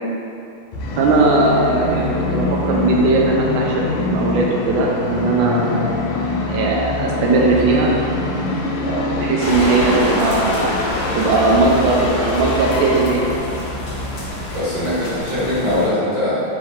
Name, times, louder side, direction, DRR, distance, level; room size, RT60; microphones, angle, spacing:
Musical instrument, 0.7-14.4, left 2 dB, 80° left, 1.4 m, -24 dB
voice 1, 1.0-5.9 6.5-7.9 9.1-10.8 11.1-13.4, right 3 dB, 75° right, -2 dB, 1.3 m, -18 dB
sound 1, 9.4-15.9, left 1 dB, 60° left, 1.2 m, -27 dB
voice 2, 14.5-16.4, left 1 dB, 45° right, -11 dB, 1.4 m, -21 dB
3.5 x 3.0 x 3.6 m, 2.6 s
omnidirectional pair, 2.3 m